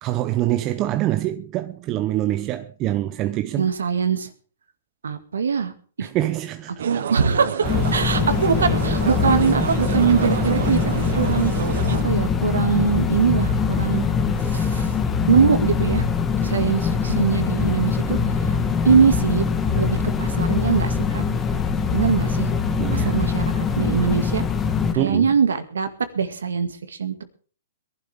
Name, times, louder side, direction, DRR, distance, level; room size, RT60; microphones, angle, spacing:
voice 1, 0.0-3.7 6.0-6.8 22.8-23.2 25.0-25.3, right 14 dB, 30° right, 0.7 m, -25 dB
voice 2, 3.6-4.3 5.0-6.1 6.7-11.5 12.0-14.0 14.4-14.9 15.3-16.0 16.4-18.2 18.8-19.5 19.8-21.2 21.9-22.5 22.9-24.4 24.9-25.9 26.1-27.2, right 6 dB, 85° right, 2.1 m, -22 dB
sound 1, 6.8-12.0, right 8 dB, 70° right, 0.9 m, -28 dB
sound 2, 7.6-24.9, left 5 dB, 20° left, 1.8 m, -23 dB
22.5 x 11.5 x 3.5 m
hypercardioid pair, 130°, 0 cm